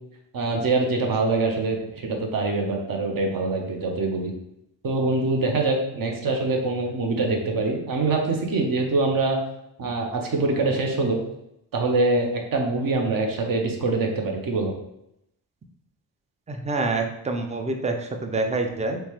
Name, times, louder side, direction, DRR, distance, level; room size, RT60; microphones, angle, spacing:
voice 1, 0.3-4.3 4.8-9.4 9.8-11.2 11.7-14.7, right 3 dB, 50° right, 2 dB, 0.8 m, -24 dB
voice 2, 16.5-19.0, right 3 dB, 15° right, 4 dB, 0.4 m, -26 dB
3.1 x 2.1 x 3.0 m, 0.81 s
supercardioid pair, 45°, 45 cm